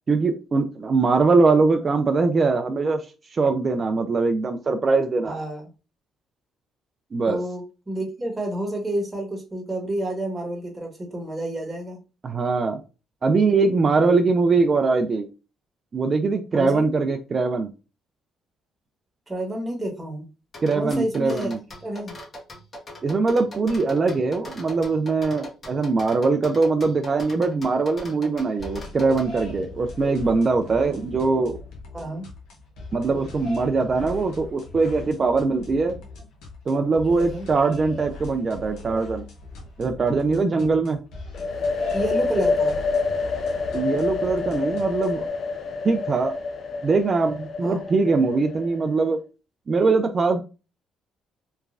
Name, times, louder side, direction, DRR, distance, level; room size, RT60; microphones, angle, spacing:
voice 1, 0.1-3.1 3.3-5.4 7.1-7.4 12.2-12.8 13.2-15.3 15.9-17.7 20.6-21.6 23.0-31.6 32.9-36.0 36.7-39.2 39.8-41.0 43.7-45.2 45.8-46.4 46.8-49.2 49.7-50.4, right 4 dB, 40° right, 6 dB, 0.4 m, -22 dB
voice 2, 5.2-5.7 7.3-12.0 16.5-16.8 19.3-20.3 20.7-21.5 21.8-22.2 31.9-32.3 37.1-37.5 41.9-42.8 47.6-47.8, right 1 dB, 15° right, 0 dB, 1.1 m, -29 dB
sound 1, 20.5-29.3, left 1 dB, 40° left, 1.1 m, -40 dB
sound 2, 28.6-45.3, left 2 dB, 75° left, 0.7 m, -40 dB
sound 3, 41.3-49.0, left 4 dB, 55° left, 0.4 m, -27 dB
3.1 x 2.2 x 2.4 m, 0.31 s
supercardioid pair, 75°, 0 cm